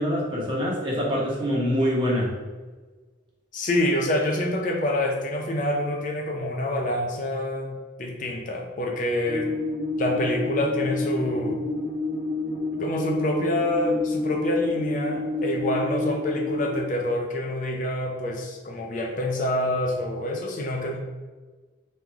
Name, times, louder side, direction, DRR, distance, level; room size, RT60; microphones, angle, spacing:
voice 1, 0.0-2.3, equal, 25° right, -4 dB, 1.0 m, -25 dB
voice 2, 3.5-7.7 8.0-9.5 10.0-11.6 12.7-21.0, left 1 dB, 40° left, 1 dB, 0.5 m, -27 dB
sound 1, 9.3-16.8, left 2 dB, 10° right, 0.6 m, -29 dB
3.8 x 3.2 x 3.4 m, 1.3 s
head